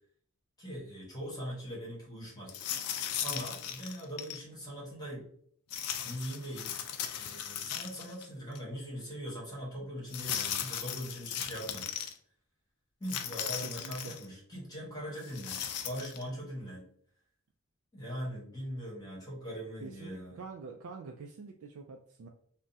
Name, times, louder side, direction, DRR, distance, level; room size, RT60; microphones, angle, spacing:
voice 1, 0.6-2.5 3.2-5.3 6.0-6.8 7.1-11.9 13.0-16.9 17.9-20.4, equal, 20° left, -5 dB, 1.1 m, -41 dB
sound 1, 2.5-4.4 5.7-8.3 8.6-8.7 10.1-12.1 13.0-14.3 15.2-16.2, left 9 dB, 85° left, 0.4 m, -37 dB
voice 2, 13.6-14.1 19.8-22.3, right 4 dB, 70° right, 2 dB, 0.3 m, -46 dB
3.5 x 2.1 x 2.6 m, 0.62 s
head